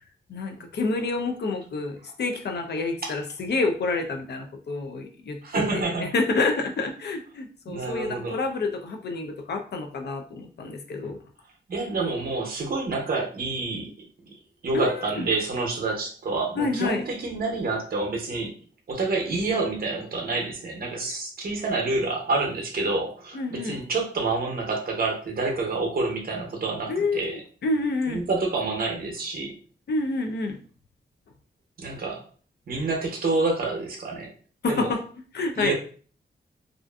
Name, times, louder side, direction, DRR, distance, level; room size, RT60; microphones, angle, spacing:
voice 1, 0.3-11.2 14.7-15.3 16.5-17.0 23.3-23.8 26.9-28.2 29.9-30.6 34.6-35.0 35.3-35.7, left 3 dB, 65° left, 4 dB, 0.4 m, -28 dB
voice 2, 5.4-6.1 7.7-8.4 11.7-13.9 14.6-18.5 18.9-27.4 28.1-29.5 31.8-32.2 32.7-34.3 34.7-34.9 35.5-35.7, right 3 dB, 55° right, 1 dB, 0.6 m, -28 dB
2.4 x 2.4 x 2.3 m, 0.42 s
wide cardioid pair, 175°, 19 cm